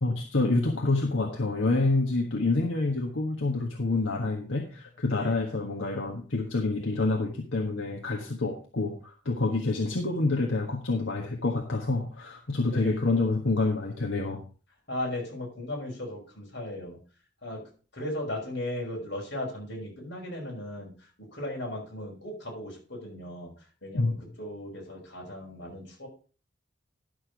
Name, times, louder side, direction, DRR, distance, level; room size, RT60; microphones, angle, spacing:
voice 1, 0.0-14.4 23.9-24.2, left 2 dB, 85° left, 1 dB, 1.5 m, -27 dB
voice 2, 12.7-13.0 14.9-17.0 17.4-20.9 21.2-23.5 23.8-26.1, left 1 dB, 65° left, -1 dB, 5.4 m, -37 dB
11.5 x 6.6 x 5.1 m, 0.38 s
head